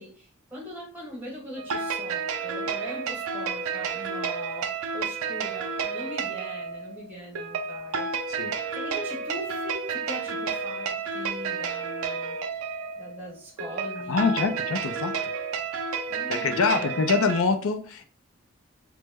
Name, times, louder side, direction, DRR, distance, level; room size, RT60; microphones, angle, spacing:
voice 1, 0.0-8.1 8.7-12.4 13.0-14.6 16.1-17.0, equal, 10° right, -4 dB, 1.1 m, -41 dB
sound 1, 1.6-17.4, right 5 dB, 85° right, 0.5 m, -31 dB
voice 2, 14.1-15.3 16.3-18.1, left 4 dB, 75° left, 6 dB, 0.4 m, -25 dB
3.2 x 2.0 x 3.4 m, 0.43 s
head